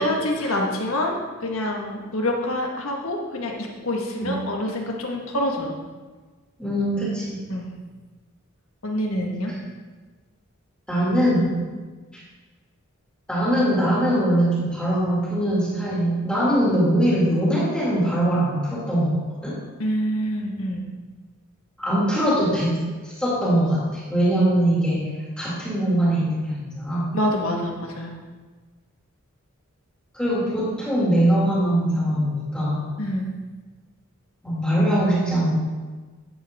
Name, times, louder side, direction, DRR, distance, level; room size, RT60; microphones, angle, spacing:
voice 1, 0.0-5.7 7.5-7.7 8.8-9.5 19.8-20.9 27.1-28.1 33.0-33.3, left 1 dB, 75° left, 0 dB, 1.5 m, -26 dB
voice 2, 6.6-7.4 10.9-11.6 12.1-12.2 13.3-19.2 19.4-19.6 21.8-22.7 23.0-27.1 30.1-32.9 34.4-35.5, right 1 dB, 5° left, -8 dB, 2.2 m, -22 dB
11.0 x 7.6 x 3.6 m, 1.3 s
head